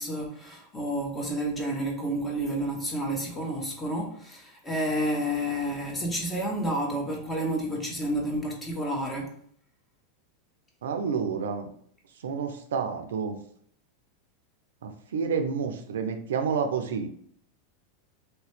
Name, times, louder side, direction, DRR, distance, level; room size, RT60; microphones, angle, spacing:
voice 1, 0.0-9.3, right 1 dB, 15° left, 0 dB, 1.1 m, -30 dB
voice 2, 10.8-11.7 12.2-13.4 14.8-17.1, right 6 dB, 80° right, 6 dB, 0.5 m, -29 dB
3.2 x 2.9 x 3.1 m, 0.63 s
hypercardioid pair, 105°, 0 cm